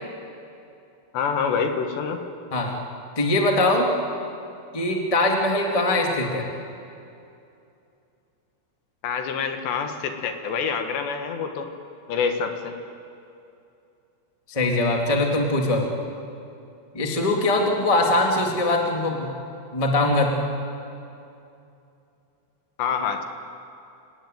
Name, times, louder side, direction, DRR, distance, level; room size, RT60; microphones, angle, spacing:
voice 1, 1.1-2.2 9.0-11.7 12.1-12.8 22.8-23.2, left 6 dB, 70° left, 6 dB, 3.4 m, -26 dB
voice 2, 3.1-3.9 4.7-6.5 14.5-15.9 16.9-19.3 19.7-20.4, left 2 dB, 25° left, 1 dB, 0.7 m, -22 dB
28.5 x 19.0 x 9.3 m, 2.7 s
omnidirectional pair, 5.7 m